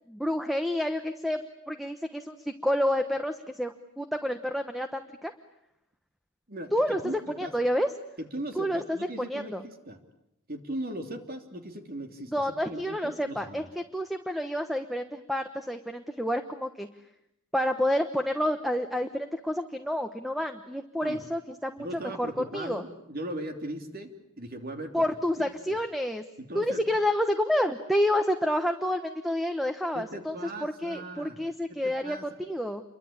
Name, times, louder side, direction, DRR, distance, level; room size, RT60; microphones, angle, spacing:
voice 1, 0.1-2.4 2.6-5.3 6.7-7.0 7.4-7.9 8.6-9.0 9.3-9.6 12.3-13.6 13.9-16.9 17.5-21.9 22.2-22.8 24.9-26.2 26.5-30.3 30.6-32.8, left 1 dB, ahead, 8 dB, 1.1 m, -29 dB
voice 2, 6.5-7.5 8.2-10.0 10.5-13.7 21.0-21.2 21.8-25.1 26.4-26.8 29.9-31.4 31.7-32.2, right 1 dB, 45° right, 6 dB, 3.1 m, -39 dB
28.5 x 23.5 x 8.8 m, 0.83 s
head